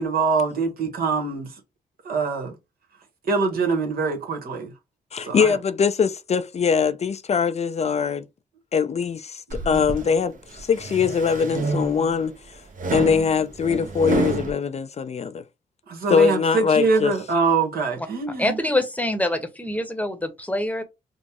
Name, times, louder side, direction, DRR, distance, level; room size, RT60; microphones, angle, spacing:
voice 1, 0.0-1.5 2.0-2.5 3.3-4.7 5.2-5.6 9.5-9.9 15.9-18.6, right 4 dB, 70° right, 1.2 m, -24 dB
voice 2, 5.1-8.3 8.7-12.4 12.9-15.4 16.1-17.1, left 6 dB, 45° left, 0.4 m, -22 dB
sound 1, 9.5-10.1 10.6-12.2 12.8-14.5, right 3 dB, 55° right, 1.0 m, -28 dB
voice 3, 18.4-20.8, left 1 dB, 10° left, 0.9 m, -25 dB
5.2 x 2.0 x 2.9 m
cardioid pair, 70°, 16 cm